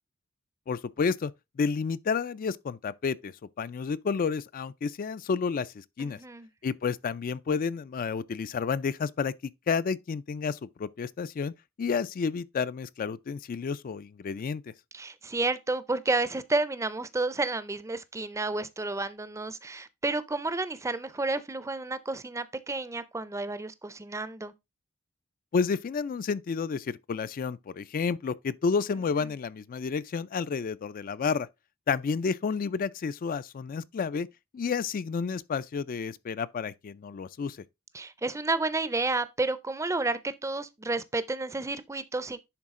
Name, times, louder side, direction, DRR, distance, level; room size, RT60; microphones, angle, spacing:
voice 1, 0.7-1.3 1.6-6.2 6.6-9.3 9.7-11.5 11.8-14.6 25.5-31.5 31.9-34.3 34.5-37.6, left 5 dB, 40° left, 0.3 m, -30 dB
voice 2, 6.0-6.5 14.9-24.5 37.9-42.4, right 3 dB, 15° right, 0.5 m, -31 dB
10.5 x 3.8 x 3.6 m
head